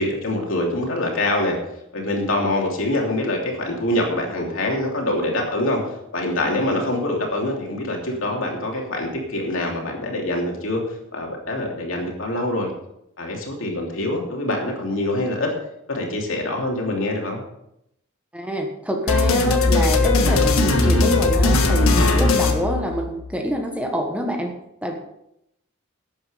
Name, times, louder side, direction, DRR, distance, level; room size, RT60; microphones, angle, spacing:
voice 1, 0.0-1.6 1.9-5.8 6.1-12.7 13.2-15.5 15.9-17.4, left 1 dB, 65° left, 0 dB, 3.0 m, -24 dB
voice 2, 18.3-24.5 24.8-25.0, equal, 5° right, 2 dB, 1.3 m, -26 dB
sound 1, 19.1-23.4, left 2 dB, 80° left, 1.6 m, -18 dB
12.0 x 8.8 x 5.1 m, 0.80 s
head